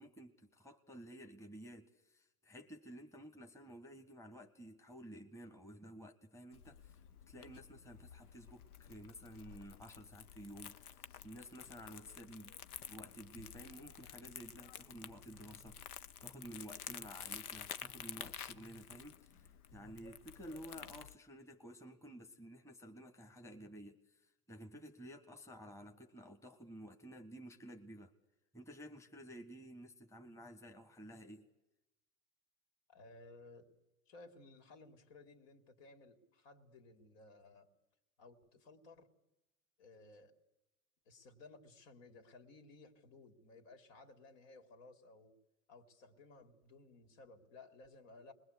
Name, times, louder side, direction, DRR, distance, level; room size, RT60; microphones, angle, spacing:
voice 1, 0.0-7.0 7.3-12.5 12.9-28.1 28.5-31.5, equal, 5° left, 5 dB, 1.7 m, -53 dB
Crumpling crinkling, 6.5-21.1, left 9 dB, 80° left, 1.1 m, -51 dB
voice 2, 32.9-33.7 34.1-37.7 38.2-39.1 39.8-40.3 41.1-45.4 45.7-48.3, left 3 dB, 60° left, 7 dB, 3.7 m, -58 dB
28.5 x 21.5 x 8.4 m, 0.95 s
hypercardioid pair, 100°, 44 cm